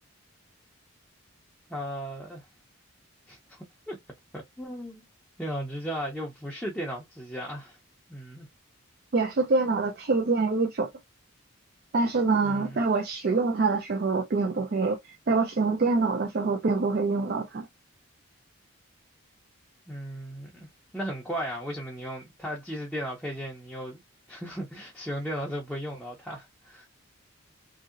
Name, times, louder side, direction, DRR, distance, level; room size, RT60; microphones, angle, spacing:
voice 1, 1.7-2.4 3.3-3.6 3.9-4.0 4.3-5.0 5.4-7.8 8.1-8.5 12.4-12.8 19.9-20.7 20.9-24.0 24.3-26.9, equal, 5° left, 0.5 m, -36 dB
voice 2, 9.1-10.9 11.9-17.7, right 3 dB, 45° right, 0.4 m, -25 dB
2.9 x 2.7 x 2.4 m
head